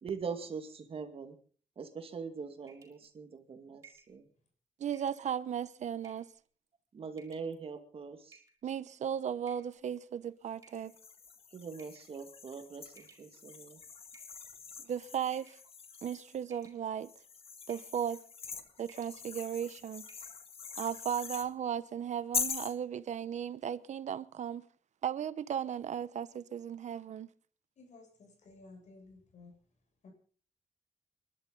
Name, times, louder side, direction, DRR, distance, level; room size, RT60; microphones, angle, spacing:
voice 1, 0.0-1.4 1.8-4.3 6.9-8.4 11.5-13.8, right 5 dB, 50° right, 2.2 m, -42 dB
sound 1, 2.7-3.1 3.8-4.1 4.9-5.2 6.0-6.4 7.1-7.6 8.3-8.8 9.5-9.8 10.6-11.2 11.8-12.1 13.0-13.6 14.1-14.8 15.3-15.7 15.9-16.2 16.5-17.1 17.7-18.0 18.3-18.5 18.8-19.2 19.5-19.6 20.0-20.4, right 4 dB, 25° right, 5.0 m, -60 dB
voice 2, 4.8-6.3 8.6-10.9 14.9-15.6 16.0-17.1 17.7-18.2 18.8-20.1 20.8-24.6 25.0-27.3, right 9 dB, 70° right, 0.9 m, -36 dB
sound 2, 10.8-16.4 17.0-21.5 22.3-22.8, left 6 dB, 50° left, 1.8 m, -43 dB
voice 3, 27.8-29.5 30.0-30.1, left 3 dB, 70° left, 7.1 m, -55 dB
29.5 x 12.0 x 4.0 m
wide cardioid pair, 175°, 13 cm